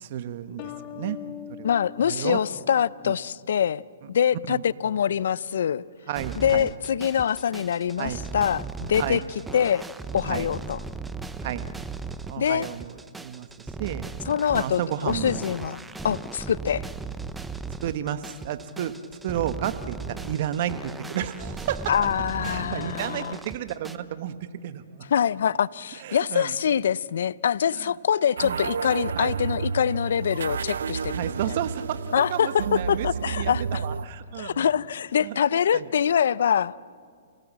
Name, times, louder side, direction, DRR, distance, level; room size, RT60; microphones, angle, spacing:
voice 1, 0.0-1.2 1.6-1.8 2.0-2.4 3.0-3.1 4.5-4.6 6.1-6.7 8.0-8.2 9.0-9.2 10.3-10.5 11.4-11.7 12.3-12.9 13.2-13.5 13.8-14.0 14.5-15.5 17.8-18.9 19.2-21.8 22.4-25.0 26.0-26.5 27.8-27.9 28.4-28.6 29.1-29.3 31.1-34.7 35.2-35.4 35.7-35.9, right 11 dB, 50° right, 1.2 m, -32 dB
sound 1, 0.6-3.2, left 11 dB, 40° left, 1.3 m, -42 dB
voice 2, 1.6-3.8 4.1-5.8 6.3-9.2 9.5-9.9 10.1-10.8 12.4-12.7 14.3-16.9 21.9-23.4 25.1-31.4 32.1-33.8 34.4-36.9, left 8 dB, 70° left, 0.5 m, -24 dB
sound 2, 6.1-24.0, right 4 dB, 5° right, 0.8 m, -37 dB
sound 3, 28.4-34.1, right 6 dB, 75° right, 0.7 m, -31 dB
28.0 x 17.5 x 7.5 m
hypercardioid pair, 135°, 0 cm